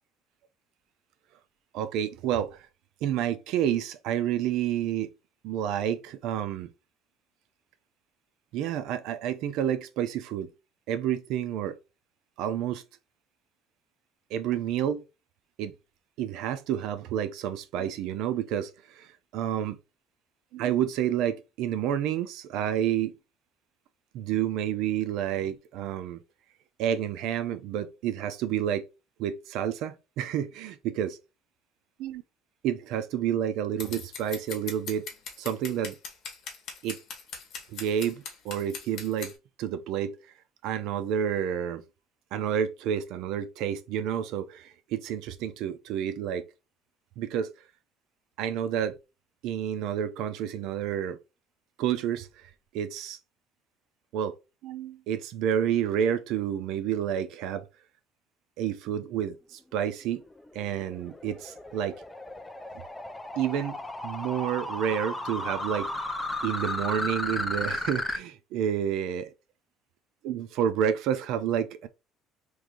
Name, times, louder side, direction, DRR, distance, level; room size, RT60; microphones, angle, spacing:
voice 1, 1.7-2.7 3.0-5.1 5.4-6.7 8.5-10.5 10.9-11.8 12.4-12.8 14.3-15.0 15.6-15.7 16.2-19.8 20.5-23.2 24.1-26.2 26.8-28.8 29.2-31.2 32.0-32.2 32.6-35.1 35.4-35.9 36.8-37.0 37.7-39.3 39.6-40.2 40.6-41.8 42.3-46.4 47.2-47.5 48.4-49.0 49.4-51.2 51.8-53.2 54.1-54.3 54.6-57.7 58.6-60.2 60.5-62.0 63.4-63.8 64.0-65.9 66.4-69.2 70.2-71.9, right 9 dB, 75° right, 0.5 m, -29 dB
Scissors, 33.8-39.3, left 5 dB, 65° left, 1.0 m, -39 dB
sound 1, 60.1-68.2, left 2 dB, 10° left, 0.4 m, -34 dB
3.1 x 2.6 x 3.5 m
cardioid pair, 130°, 0 cm